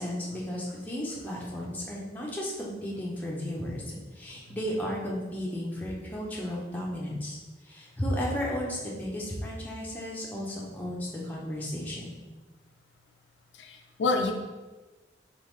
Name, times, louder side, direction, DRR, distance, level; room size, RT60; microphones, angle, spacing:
voice 1, 0.0-7.4 7.6-12.2, equal, 10° left, -5 dB, 0.7 m, -34 dB
voice 2, 13.6-14.3, left 3 dB, 80° left, 4 dB, 0.4 m, -28 dB
4.0 x 3.7 x 3.1 m, 1.2 s
head